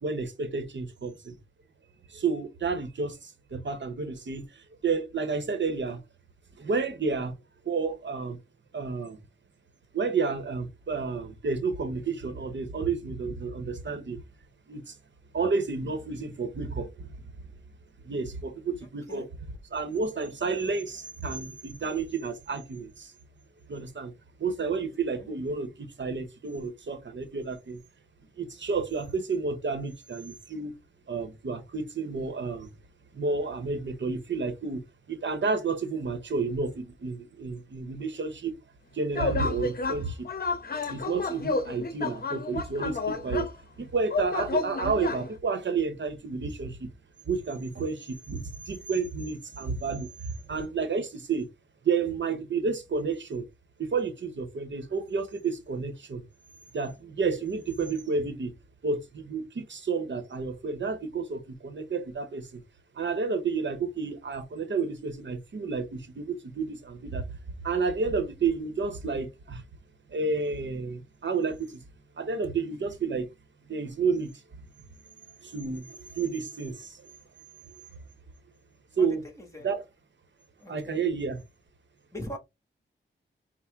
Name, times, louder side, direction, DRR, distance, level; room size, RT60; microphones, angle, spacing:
voice 1, 0.0-1.4 2.1-6.0 6.6-7.3 7.6-8.4 8.7-9.2 9.9-14.2 14.7-15.0 15.3-17.1 18.0-19.3 19.7-23.1 23.7-24.1 24.4-27.8 28.4-30.7 31.1-32.7 33.1-34.8 35.1-38.6 38.9-40.3 40.8-43.5 43.8-46.9 47.3-51.5 51.8-53.4 53.8-56.2 56.7-58.5 58.8-62.6 62.9-67.2 67.6-69.6 70.1-71.8 72.2-73.3 73.7-74.3 75.4-77.1 79.0-79.2 79.6-79.9 80.7-81.4, right 4 dB, 65° right, 0.9 m, -31 dB
sound 1, 39.1-40.0 40.2-43.5 44.1-45.3, left 3 dB, 50° left, 0.7 m, -30 dB
voice 2, 79.4-79.7 80.6-81.0 82.1-82.4, left 1 dB, 15° left, 1.6 m, -40 dB
5.8 x 2.1 x 3.5 m
wide cardioid pair, 75°, 20 cm